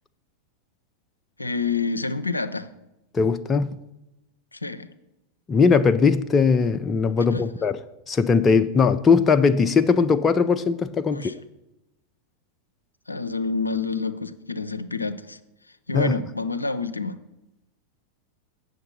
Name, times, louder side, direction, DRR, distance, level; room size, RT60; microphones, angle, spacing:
voice 1, 1.4-2.7 4.5-4.9 7.3-7.4 11.1-11.3 13.1-15.4 15.9-17.2, left 4 dB, 85° left, 0.5 m, -28 dB
voice 2, 3.1-3.8 5.5-7.8 8.1-11.3 15.9-16.1, left 5 dB, 20° left, 0.4 m, -20 dB
8.8 x 6.6 x 6.5 m
figure-of-eight pair, 90°, 0 cm